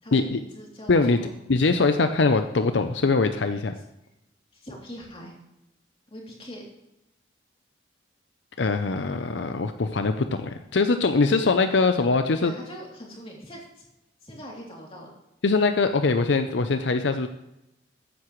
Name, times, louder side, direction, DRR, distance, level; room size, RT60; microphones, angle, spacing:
voice 1, 0.0-1.3 3.7-3.8 4.5-5.3 6.1-6.7 12.4-13.9 14.2-15.1, equal, 30° left, -2 dB, 3.1 m, -42 dB
voice 2, 1.5-3.7 8.6-12.5 15.4-17.3, left 3 dB, 75° left, 8 dB, 0.6 m, -22 dB
14.0 x 9.8 x 3.1 m, 0.90 s
head